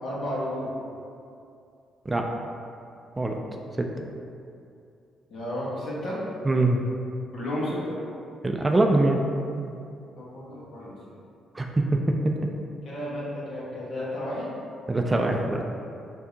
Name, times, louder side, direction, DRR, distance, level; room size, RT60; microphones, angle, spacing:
voice 1, 0.0-0.7 5.3-6.2 7.3-8.0 10.2-11.2 12.8-14.5, left 1 dB, 65° left, -7 dB, 1.2 m, -32 dB
voice 2, 6.4-6.8 8.4-9.2 9.5-9.8 11.5-12.1 14.9-15.6, right 2 dB, 20° right, 2 dB, 0.3 m, -23 dB
4.7 x 2.7 x 2.7 m, 2.5 s
cardioid pair, 90°, 0 cm